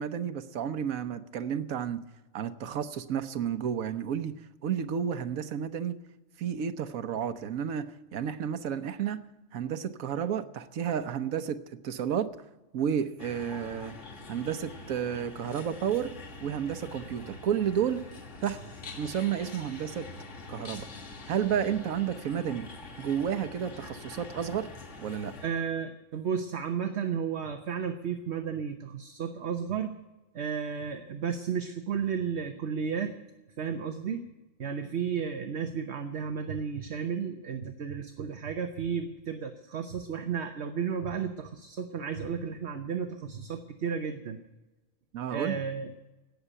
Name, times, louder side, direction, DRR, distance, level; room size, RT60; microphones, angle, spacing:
voice 1, 0.0-2.0 2.3-4.3 4.6-6.0 6.4-9.2 9.5-12.3 12.7-13.9 14.3-16.1 16.4-18.0 18.4-18.6 19.0-20.1 20.5-20.9 21.3-22.7 23.0-24.7 25.0-25.4 45.1-45.6, right 8 dB, 90° right, 1.3 m, -31 dB
sound 1, 13.2-25.5, left 3 dB, 60° left, 2.1 m, -45 dB
voice 2, 25.4-29.9 30.3-33.1 33.6-34.3 34.6-44.4 45.3-45.9, right 7 dB, 60° right, 1.1 m, -33 dB
17.5 x 6.8 x 9.9 m
omnidirectional pair, 1.4 m